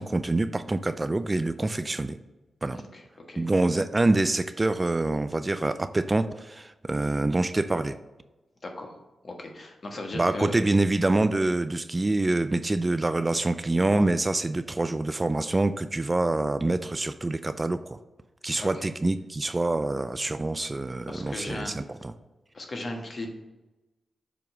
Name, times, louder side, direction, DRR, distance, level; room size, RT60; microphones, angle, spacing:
voice 1, 0.0-2.2 2.6-2.8 3.4-8.0 10.1-18.0 18.4-22.1, right 2 dB, 30° right, 11 dB, 0.3 m, -26 dB
voice 2, 8.6-8.9 9.2-10.5 18.6-18.9 21.1-21.7 22.5-23.3, left 2 dB, 45° left, 2 dB, 1.3 m, -36 dB
7.0 x 3.0 x 4.7 m, 1.1 s
cardioid pair, 50°, 0 cm